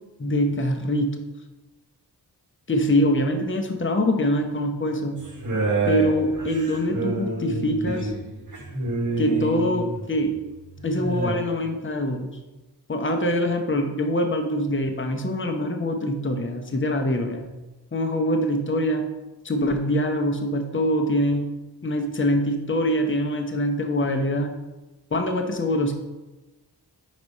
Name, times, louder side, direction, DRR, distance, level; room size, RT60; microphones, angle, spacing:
voice 1, 0.2-1.2 2.7-5.2 5.9-8.1 9.2-10.4 10.8-12.4 12.9-17.5 17.9-19.1 19.4-21.5 21.8-24.5 25.1-25.9, equal, 30° left, 4 dB, 0.8 m, -24 dB
sound 1, 5.2-10.1 10.8-11.3, right 3 dB, 45° right, 1.1 m, -28 dB
4.8 x 4.1 x 5.3 m, 1.1 s
wide cardioid pair, 60°, 41 cm